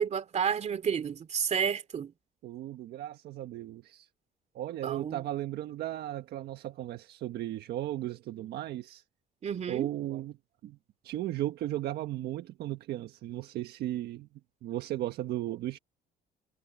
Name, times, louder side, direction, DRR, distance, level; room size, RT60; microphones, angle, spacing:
voice 1, 0.0-2.1 4.8-5.2 9.4-9.9, right 7 dB, 40° right, 2.9 m, -31 dB
voice 2, 2.4-4.1 4.5-9.0 9.7-10.4 10.6-10.8 11.0-14.3 14.6-15.8, right 14 dB, 70° right, 1.5 m, -36 dB
cardioid pair, 110°, 17 cm